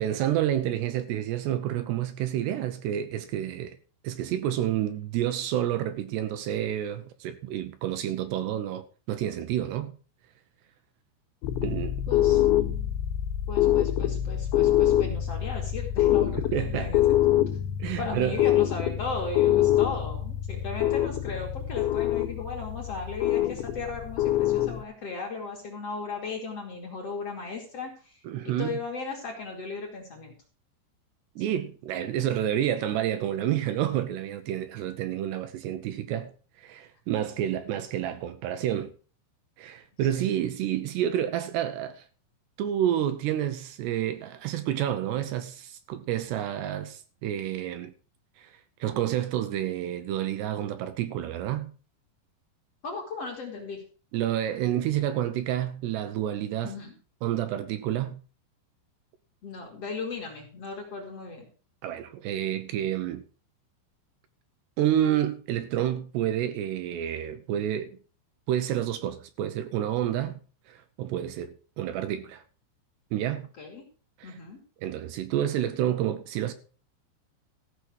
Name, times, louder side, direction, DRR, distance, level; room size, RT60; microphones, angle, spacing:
voice 1, 0.0-3.8 4.0-9.9 11.6-12.0 16.5-16.9 17.8-18.4 28.2-28.8 31.4-36.3 36.6-38.9 39.6-42.1 42.6-47.9 48.4-51.7 54.1-56.8 57.2-58.2 61.8-63.2 64.8-68.0 68.5-70.4 70.7-72.4 73.1-73.5 74.2-74.4 74.8-76.5, right 11 dB, 75° right, 2.8 m, -29 dB
sound 1, 11.4-24.8, left 13 dB, 80° left, 3.2 m, -25 dB
voice 2, 12.1-12.4 13.5-17.4 18.0-28.1 28.4-30.3 32.2-32.3 40.1-40.3 52.8-53.8 56.6-56.9 59.4-61.5 73.6-73.8 74.2-74.6, left 4 dB, 40° left, 2.8 m, -36 dB
15.0 x 6.3 x 6.3 m
omnidirectional pair, 5.3 m